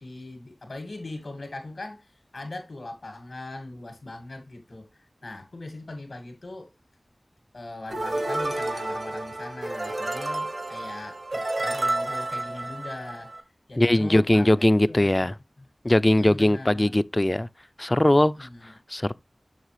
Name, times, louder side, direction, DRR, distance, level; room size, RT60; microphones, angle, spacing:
voice 1, 0.0-6.7 7.5-15.3 16.1-17.0 18.2-18.7, left 2 dB, 90° left, 2.2 m, -40 dB
sound 1, 7.9-13.4, right 2 dB, 70° right, 1.3 m, -30 dB
voice 2, 13.8-15.3 15.8-17.5 17.8-18.5 18.9-19.1, left 1 dB, 30° left, 0.4 m, -20 dB
7.3 x 6.0 x 3.2 m
wide cardioid pair, 45°, 0 cm